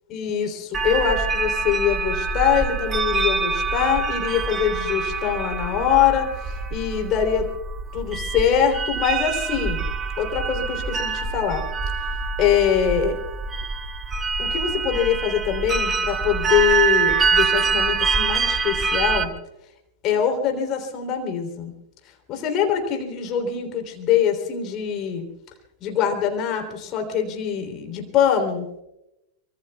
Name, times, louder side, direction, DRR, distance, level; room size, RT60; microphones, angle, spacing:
voice 1, 0.1-7.5 7.9-9.8 10.2-11.7 12.4-13.2 14.4-19.3 20.0-21.7 22.3-25.2 25.8-28.7, left 8 dB, 35° left, 4 dB, 3.3 m, -23 dB
sound 1, 0.7-19.3, right 5 dB, 20° right, 1.4 m, -25 dB
24.5 x 24.5 x 2.3 m, 0.90 s
figure-of-eight pair, 90°, 0 cm